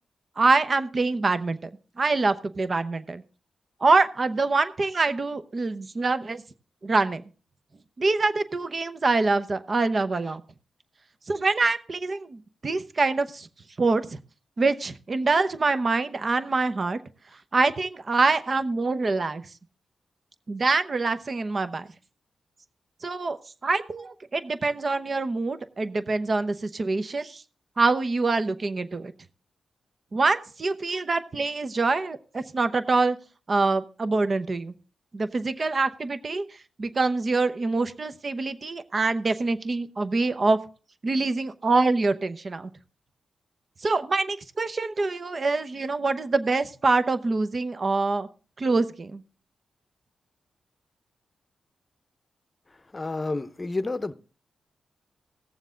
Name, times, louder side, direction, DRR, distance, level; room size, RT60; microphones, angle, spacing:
voice 1, 0.4-1.7 2.0-3.2 3.8-6.4 6.8-7.2 8.0-10.4 11.3-13.5 13.8-14.2 14.6-17.0 17.5-19.4 20.5-21.9 23.0-23.4 23.6-27.4 27.8-29.1 30.1-33.2 33.5-34.7 35.1-36.4 36.8-40.6 41.0-42.7 43.8-48.3 48.6-49.2, right 3 dB, 45° right, 0.8 m, -25 dB
voice 2, 52.9-54.1, left 3 dB, 30° left, 0.7 m, -29 dB
17.5 x 7.2 x 3.8 m
cardioid pair, 75°, 0 cm